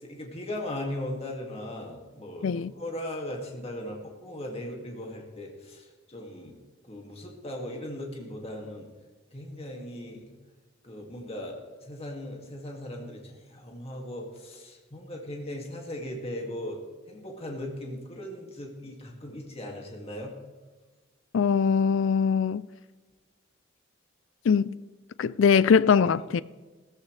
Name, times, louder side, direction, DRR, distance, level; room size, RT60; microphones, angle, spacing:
voice 1, 0.0-6.6 6.9-8.9 9.3-10.4 10.8-16.8 17.1-20.3, left 1 dB, 30° left, 2.2 m, -38 dB
voice 2, 21.3-22.6 24.5-24.8 25.2-26.4, left 6 dB, 70° left, 0.4 m, -22 dB
17.0 x 14.5 x 3.3 m
head